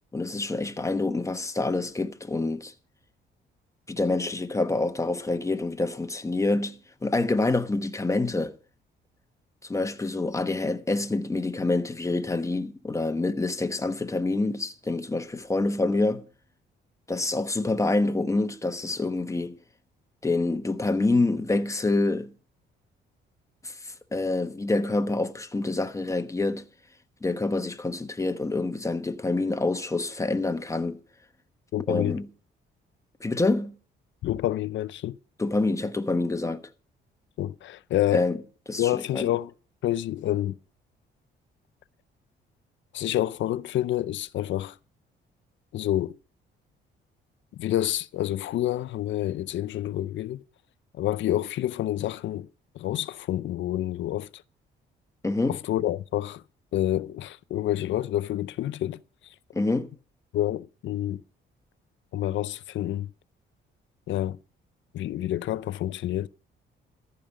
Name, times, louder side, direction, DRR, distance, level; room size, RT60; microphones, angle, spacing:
voice 1, 0.1-2.7 3.9-8.5 9.6-16.3 17.1-19.6 20.2-22.3 23.6-26.6 27.2-31.0 31.9-32.3 33.2-33.7 35.4-36.6 38.1-38.4 38.7-39.3 55.2-55.6 59.5-59.9, left 2 dB, 15° left, 1.2 m, -27 dB
voice 2, 31.7-32.2 34.2-35.2 37.4-38.3 38.8-39.5 39.8-40.6 42.9-44.8 45.7-46.2 47.5-50.4 50.9-52.5 52.7-54.4 55.5-56.4 56.7-59.0 60.3-61.2 62.1-63.1 64.1-64.4 64.9-66.3, left 13 dB, 70° left, 0.6 m, -28 dB
14.0 x 5.3 x 8.6 m
cardioid pair, 90°, 20 cm